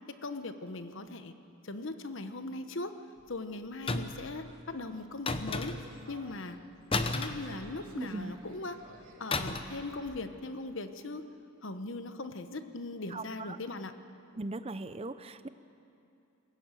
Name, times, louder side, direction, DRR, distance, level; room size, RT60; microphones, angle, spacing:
voice 1, 0.1-1.3 1.6-2.9 3.3-5.8 6.1-6.6 6.9-8.8 9.2-11.2 11.6-14.0, left 2 dB, 60° left, 9 dB, 1.1 m, -39 dB
sound 1, 3.7-10.5, right 2 dB, 85° right, 3.1 m, -58 dB
sound 2, 3.9-4.3 5.3-6.0 6.9-8.1 9.3-9.8 10.1-10.3, left 3 dB, 25° left, 0.8 m, -33 dB
voice 2, 7.9-8.3 13.1-13.6 14.3-15.5, right 2 dB, 25° right, 12 dB, 0.6 m, -39 dB
21.5 x 17.0 x 9.1 m, 2.8 s
head